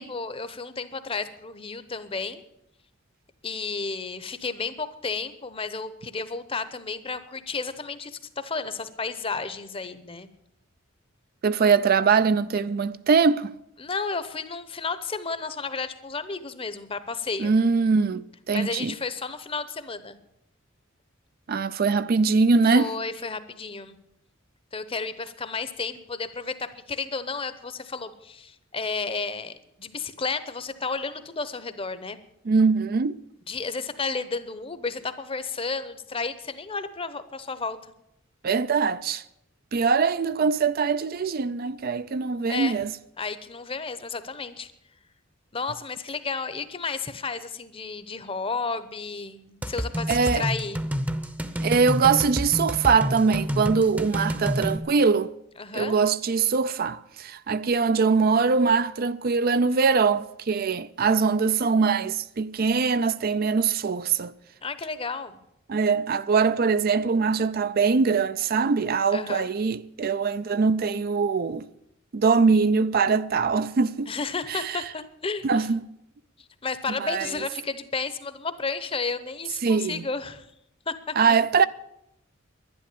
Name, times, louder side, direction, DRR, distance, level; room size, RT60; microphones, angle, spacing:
voice 1, 0.0-2.4 3.4-10.3 13.8-17.5 18.5-20.2 22.7-24.0 24.7-32.2 33.5-37.9 42.5-42.8 43.2-44.7 45.5-50.8 55.6-56.0 64.6-65.4 69.1-69.5 74.1-75.7 76.6-80.5 80.9-81.4, left 4 dB, 30° left, 0.8 m, -32 dB
voice 2, 11.4-13.5 17.4-18.9 21.5-22.9 32.5-33.2 38.4-39.2 39.7-42.9 50.1-50.4 51.6-55.3 55.7-64.3 65.7-71.7 72.1-74.1 74.5-74.8 75.4-75.9 77.0-77.3 79.6-80.0 81.2-81.7, right 5 dB, 45° right, 0.4 m, -22 dB
sound 1, 49.6-54.8, equal, 10° right, 0.8 m, -29 dB
11.5 x 11.0 x 8.4 m
head